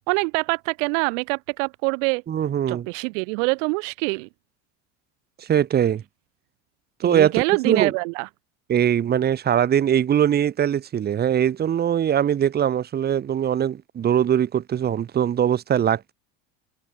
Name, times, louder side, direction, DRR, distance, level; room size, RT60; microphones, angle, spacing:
voice 1, 0.1-2.2 2.7-4.3 7.0-8.3, right 34 dB, 75° right, 0.5 m, -24 dB
voice 2, 2.3-2.9 5.4-6.0 7.0-7.9 8.7-16.1, right 9 dB, 25° right, 0.9 m, -21 dB
supercardioid pair, 120°, 38 cm